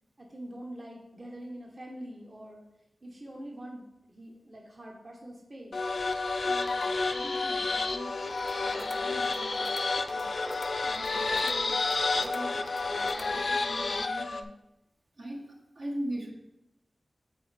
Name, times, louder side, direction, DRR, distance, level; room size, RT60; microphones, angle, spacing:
voice 1, 0.2-2.7 3.0-5.7 6.4-8.1 8.6-9.7 10.1-10.3 10.9-11.8 12.1-12.6 12.9-14.5, right 1 dB, 50° right, -1 dB, 1.1 m, -45 dB
sound 1, 5.7-14.4, left 3 dB, 70° left, 0.4 m, -30 dB
sound 2, 8.3-13.4, equal, 5° left, 0.5 m, -42 dB
voice 2, 15.2-16.3, right 1 dB, 75° right, -2 dB, 1.3 m, -35 dB
7.6 x 4.0 x 3.4 m, 0.89 s
cardioid pair, 45°, 0 cm